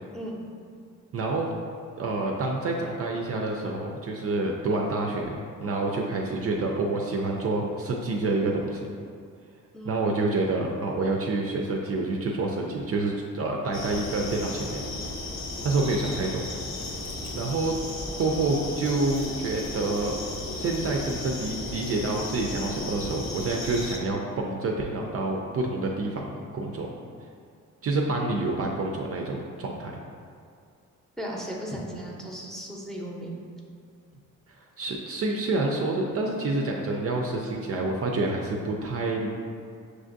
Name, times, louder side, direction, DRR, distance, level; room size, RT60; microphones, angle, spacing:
voice 1, 1.1-1.5 2.0-8.8 9.9-14.8 15.6-16.5 17.3-17.8 18.2-20.1 20.6-26.3 26.5-27.0 27.8-29.9 34.8-39.3, right 2 dB, 45° right, 0 dB, 0.4 m, -28 dB
voice 2, 9.7-10.1 31.2-33.4, equal, ahead, -2 dB, 0.6 m, -36 dB
sound 1, 13.7-24.0, left 2 dB, 55° left, 0.7 m, -35 dB
6.1 x 2.5 x 2.5 m, 2.3 s
cardioid pair, 90°, 33 cm